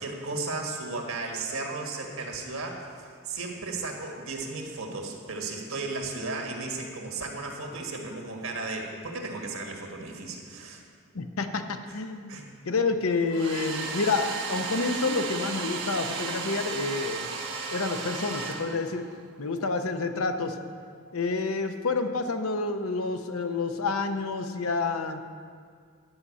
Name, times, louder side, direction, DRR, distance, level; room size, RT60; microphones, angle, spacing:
voice 1, 0.0-10.8 12.3-12.4, right 3 dB, 70° right, 1 dB, 1.6 m, -35 dB
voice 2, 11.1-12.4 12.6-17.3 17.7-19.0 19.4-20.6 21.1-25.2, left 3 dB, 80° left, 7 dB, 0.8 m, -29 dB
Domestic sounds home sounds, 13.3-19.1, right 4 dB, 55° right, 1.3 m, -34 dB
11.0 x 5.6 x 8.3 m, 2.1 s
head